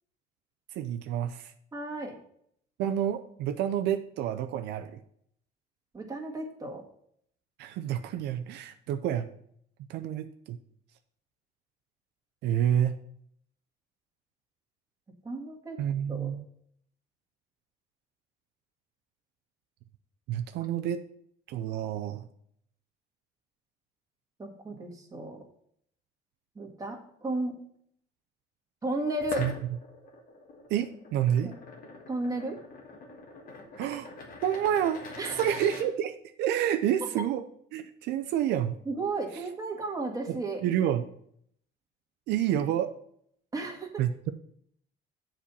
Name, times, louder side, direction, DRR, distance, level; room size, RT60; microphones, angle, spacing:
voice 1, 0.7-1.5 2.8-5.0 7.6-9.3 9.9-10.6 12.4-13.0 15.8-16.4 20.3-21.0 21.5-22.3 29.4-29.5 30.7-31.5 33.8-34.1 34.4-35.0 35.4-37.4 37.7-38.8 40.3-40.4 40.6-41.1 42.3-42.9 44.0-44.3, right 10 dB, 85° right, 8 dB, 0.5 m, -29 dB
voice 2, 1.7-2.2 5.9-6.8 15.2-15.8 16.1-16.3 20.6-20.7 24.4-25.4 26.6-27.6 28.8-29.4 31.4-31.5 32.1-32.6 35.2-35.5 38.9-40.6 43.5-44.0, right 2 dB, 20° right, 0 dB, 1.8 m, -34 dB
sound 1, 29.2-35.9, left 2 dB, 55° left, 1.7 m, -43 dB
7.3 x 4.4 x 6.8 m, 0.67 s
cardioid pair, 110°, 17 cm